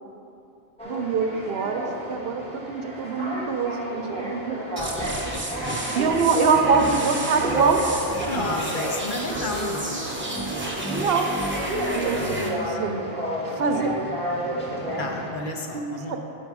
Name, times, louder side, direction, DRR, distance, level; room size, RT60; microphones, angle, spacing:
sound 1, 0.8-15.3, equal, 5° left, 1.2 m, -32 dB
voice 1, 0.8-4.6 5.9-7.8 10.9-11.4 11.9-13.0 13.5-13.9 15.7-16.2, right 5 dB, 65° right, 4 dB, 0.8 m, -24 dB
sound 2, 4.8-12.5, right 1 dB, 10° right, 0.7 m, -31 dB
voice 2, 8.3-10.1 15.0-16.2, left 2 dB, 55° left, 1 dB, 0.8 m, -32 dB
7.0 x 5.6 x 4.7 m, 2.8 s
omnidirectional pair, 1.1 m